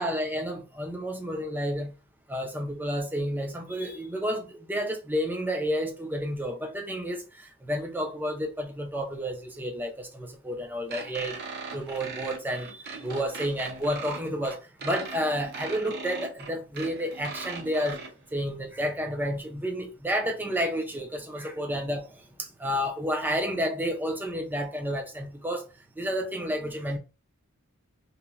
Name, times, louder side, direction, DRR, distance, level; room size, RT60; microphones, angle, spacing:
voice 1, 0.0-1.9 2.3-11.4 11.7-18.0 18.3-25.7 26.0-27.0, equal, 10° right, 0.5 m, -31 dB
sound 1, 10.9-18.1, right 4 dB, 50° right, 0.6 m, -39 dB
3.0 x 2.1 x 2.4 m
head